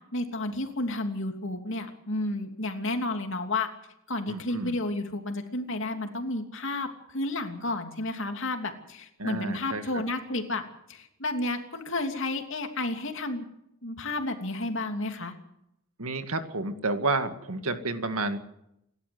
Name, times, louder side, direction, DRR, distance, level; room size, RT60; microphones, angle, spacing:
voice 1, 0.1-3.7 4.1-10.6 10.9-13.5 13.8-15.3, left 2 dB, 60° left, 5 dB, 3.0 m, -31 dB
voice 2, 4.3-4.7 9.2-10.0 16.0-18.4, right 3 dB, 85° right, 8 dB, 2.2 m, -30 dB
28.0 x 12.5 x 7.9 m, 0.80 s
head